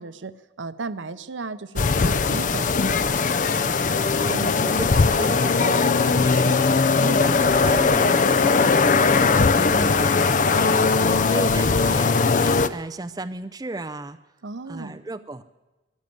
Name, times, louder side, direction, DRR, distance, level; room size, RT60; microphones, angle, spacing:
voice 1, 0.0-3.0 7.0-7.3 14.4-15.0, right 3 dB, 80° right, 13 dB, 0.7 m, -34 dB
sound 1, 1.8-12.7, left 4 dB, 40° left, 0.5 m, -19 dB
voice 2, 4.3-6.7 7.2-12.4 12.7-14.2 14.6-15.4, right 2 dB, 20° right, 9 dB, 0.4 m, -34 dB
14.0 x 11.0 x 9.4 m, 1.1 s
head